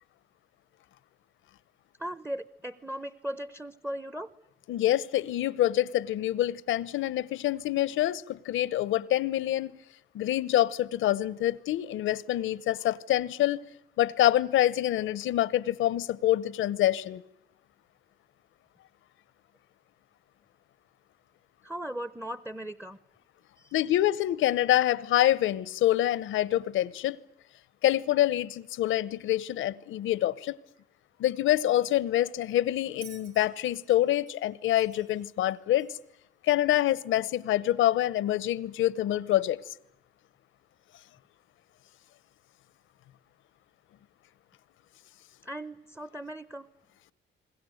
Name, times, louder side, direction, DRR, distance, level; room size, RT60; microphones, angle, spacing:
voice 1, 2.0-4.3 21.6-23.0 23.6-23.7 45.4-46.7, right 1 dB, 10° right, 0.9 m, -38 dB
voice 2, 4.7-9.7 10.1-13.7 14.0-17.2 23.7-27.2 27.8-30.6 31.2-35.9 36.4-39.6, left 13 dB, 80° left, 1.0 m, -26 dB
Bell, 33.0-36.2 37.3-37.5, right 6 dB, 85° right, 3.7 m, -54 dB
30.0 x 21.0 x 7.9 m
cardioid pair, 90°, 20 cm